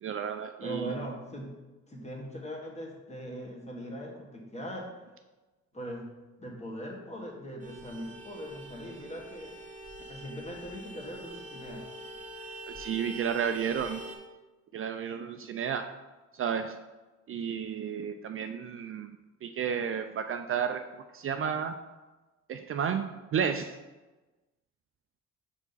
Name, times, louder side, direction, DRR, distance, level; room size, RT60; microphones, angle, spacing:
voice 1, 0.0-0.9 12.8-14.0 14.7-15.9 16.3-16.8 17.3-19.2 19.4-21.8 22.5-23.8, right 7 dB, 45° right, 7 dB, 0.4 m, -32 dB
voice 2, 0.6-1.5 1.9-4.9 5.7-6.0 6.4-9.5 10.1-11.9, equal, 20° left, -1 dB, 1.5 m, -40 dB
Vehicle horn car horn honking, 7.6-14.2, right 1 dB, 25° right, 1.2 m, -44 dB
5.8 x 4.7 x 4.0 m, 1.2 s
cardioid pair, 90°, 30 cm